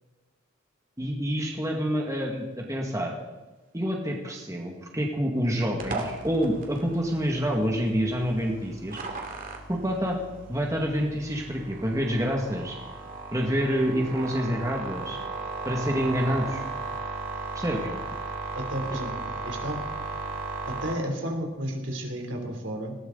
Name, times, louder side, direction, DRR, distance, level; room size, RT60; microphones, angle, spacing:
voice 1, 1.0-3.1 3.7-9.0 9.7-10.2 10.5-12.8 13.3-15.2 15.7-16.6 17.5-17.9, equal, 15° right, 0 dB, 2.0 m, -27 dB
sound 1, 5.8-20.9, right 3 dB, 45° right, 2.5 m, -36 dB
voice 2, 18.5-19.8 20.7-22.9, equal, 70° right, 2 dB, 3.4 m, -32 dB
19.5 x 17.5 x 4.0 m, 1.2 s
head